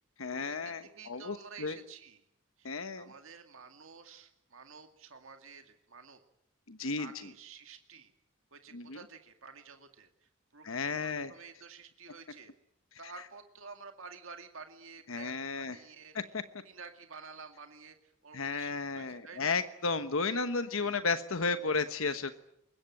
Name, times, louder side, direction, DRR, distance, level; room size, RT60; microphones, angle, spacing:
voice 1, 0.2-1.8 2.6-3.1 6.7-7.1 8.7-9.0 10.6-11.3 15.1-15.8 16.1-16.2 18.3-22.3, left 4 dB, 65° left, 10 dB, 1.2 m, -33 dB
voice 2, 0.8-2.2 2.6-6.2 7.0-8.1 8.5-12.5 13.0-16.1 16.6-19.6 20.2-20.4 20.8-21.0, right 5 dB, 65° right, 6 dB, 2.2 m, -51 dB
24.0 x 21.5 x 8.9 m, 0.77 s
head